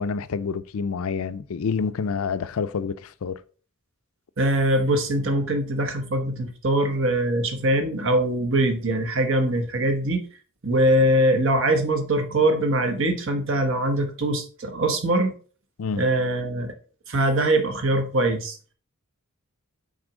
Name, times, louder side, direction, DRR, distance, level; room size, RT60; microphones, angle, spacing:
voice 1, 0.0-3.4 15.8-16.0, left 5 dB, 70° left, 0.4 m, -28 dB
voice 2, 4.4-10.3 10.6-15.3 16.0-16.7 17.1-18.6, right 1 dB, 65° right, 1.2 m, -22 dB
6.2 x 4.1 x 4.9 m
head